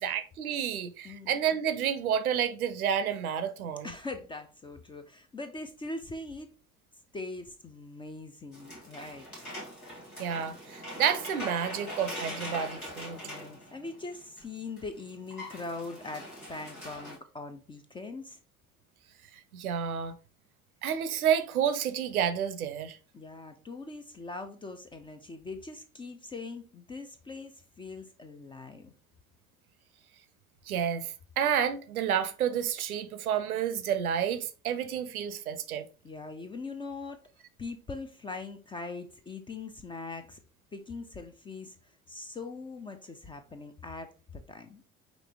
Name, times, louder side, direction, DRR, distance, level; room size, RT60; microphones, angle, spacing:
voice 1, 0.0-3.9 10.2-13.2 19.5-20.2 20.8-23.0 30.7-35.9, right 8 dB, 80° right, 0.6 m, -30 dB
voice 2, 1.0-1.4 3.8-6.5 7.1-9.3 13.2-18.4 23.1-28.9 36.0-37.2 37.6-40.4 40.7-44.8, left 3 dB, 15° left, 0.3 m, -41 dB
sound 1, 8.5-14.4 14.8-14.9 15.1-17.2, equal, 90° left, 1.4 m, -42 dB
5.0 x 2.9 x 3.4 m
figure-of-eight pair, 55°, 43 cm